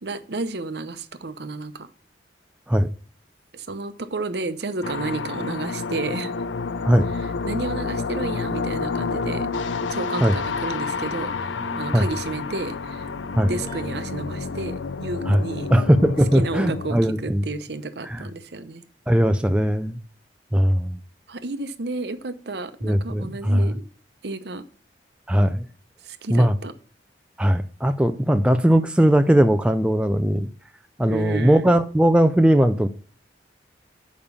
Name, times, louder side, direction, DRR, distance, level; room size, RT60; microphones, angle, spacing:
voice 1, 0.0-1.9 3.5-6.3 7.4-11.5 11.8-13.1 13.5-15.7 16.3-18.8 21.3-23.8 24.2-24.6 26.0-26.7 31.1-31.7, right 3 dB, 60° right, 0.8 m, -31 dB
sound 1, 4.8-16.9, left 4 dB, 85° left, 0.5 m, -29 dB
Keyboard (musical), 7.4-15.0, right 1 dB, 20° left, 1.6 m, -41 dB
voice 2, 15.7-17.4 18.0-18.3 19.1-20.0 20.5-21.0 22.8-23.8 25.3-25.6 26.3-26.5 27.4-30.5 31.0-32.9, equal, 5° right, 0.4 m, -19 dB
7.0 x 5.2 x 6.9 m
head